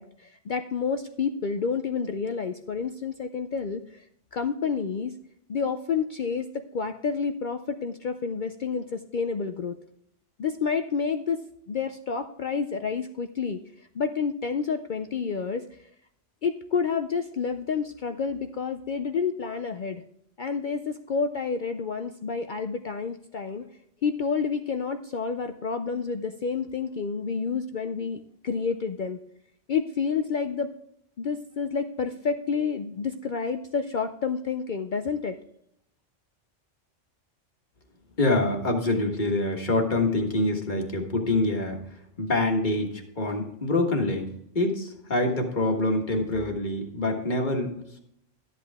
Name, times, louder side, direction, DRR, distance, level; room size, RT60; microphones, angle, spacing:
voice 1, 0.0-4.0 4.3-5.2 5.5-9.7 10.4-15.8 16.4-20.0 20.4-23.6 24.0-29.2 29.7-30.7 31.2-35.4, left 5 dB, 55° left, 7 dB, 0.5 m, -29 dB
voice 2, 38.2-41.8 42.2-48.0, left 2 dB, 40° left, 2 dB, 1.6 m, -26 dB
12.5 x 8.3 x 3.5 m, 0.75 s
omnidirectional pair, 1.3 m